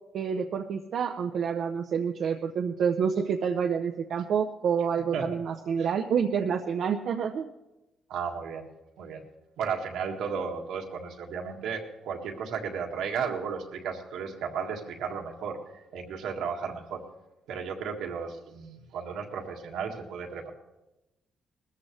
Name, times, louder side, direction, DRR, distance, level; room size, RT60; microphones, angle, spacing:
voice 1, 0.1-7.5, right 7 dB, 65° right, 4 dB, 0.7 m, -28 dB
voice 2, 8.1-8.7 9.0-9.2 9.6-17.0 17.5-20.5, right 6 dB, 85° right, 2 dB, 1.8 m, -34 dB
20.0 x 14.0 x 3.2 m, 0.98 s
cardioid pair, 90°, 0 cm